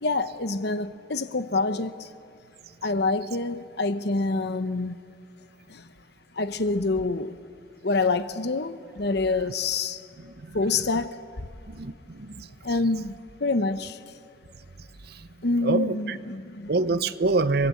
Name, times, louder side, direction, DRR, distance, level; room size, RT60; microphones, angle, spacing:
voice 1, 0.0-2.1 2.8-4.9 5.7-5.9 6.4-7.4 7.8-10.1 10.5-11.5 12.6-13.1 13.4-14.0 15.4-17.0, left 3 dB, 60° left, 0.9 m, -27 dB
voice 2, 10.2-10.6 11.7-12.5 15.1-15.2 15.6-16.2 16.7-17.7, right 3 dB, 55° right, 0.7 m, -26 dB
23.5 x 21.5 x 8.5 m
head